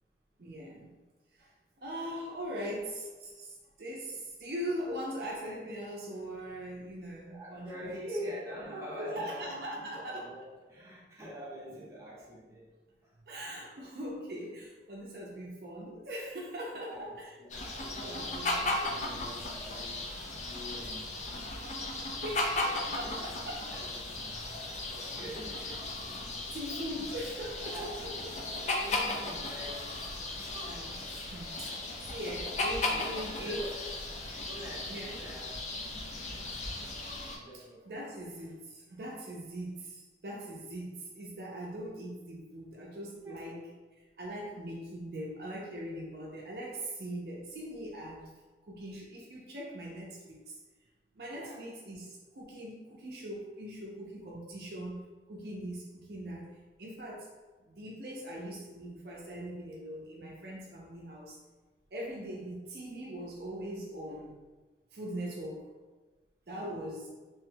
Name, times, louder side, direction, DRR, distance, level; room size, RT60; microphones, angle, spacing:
voice 1, 0.4-0.9 1.3-1.5 1.8-8.0 9.0-10.3 13.3-17.3 18.0-18.8 22.2-22.6 23.0-24.0 26.5-28.1 30.6-30.9 31.3-33.6 34.9-35.1 37.8-43.6 44.0-48.3 48.6-50.6 51.1-57.3 57.7-61.4 61.9-64.4 64.9-65.7 66.5-67.1, equal, 60° right, -3 dB, 0.5 m, -41 dB
voice 2, 7.3-12.7 13.0-13.2 16.7-17.0 17.4-21.6 22.0-24.6 24.9-26.5 27.7-28.2 28.6-30.0 30.5-30.9 32.9-33.1 33.4-33.9 34.3-36.6 37.3-38.1 43.2-43.6 51.3-51.6 66.5-66.8, equal, 15° right, -7 dB, 0.8 m, -45 dB
sound 1, 17.5-37.4, left 2 dB, 40° left, 0.4 m, -36 dB
3.0 x 2.2 x 3.2 m, 1.3 s
head